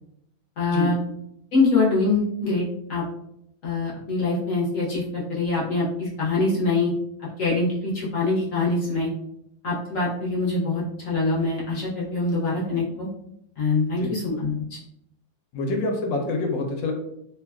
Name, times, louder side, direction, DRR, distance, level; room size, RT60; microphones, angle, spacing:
voice 1, 0.6-1.0 1.5-2.6 2.9-3.0 3.6-6.9 7.4-9.1 9.6-13.1 13.6-14.8, left 3 dB, 55° left, -7 dB, 1.0 m, -24 dB
voice 2, 15.5-16.9, left 3 dB, 90° left, 2 dB, 1.3 m, -26 dB
3.2 x 2.3 x 2.3 m, 0.77 s
omnidirectional pair, 2.0 m